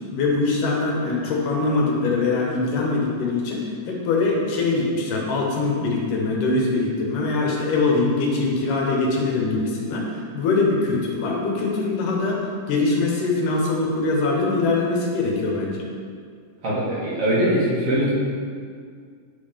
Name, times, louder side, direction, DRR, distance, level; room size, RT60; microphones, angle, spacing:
voice 1, 0.1-15.9, left 3 dB, 75° left, -2 dB, 2.6 m, -23 dB
voice 2, 16.6-18.1, right 1 dB, 50° right, -8 dB, 2.3 m, -21 dB
9.9 x 3.9 x 5.1 m, 2.1 s
omnidirectional pair, 3.8 m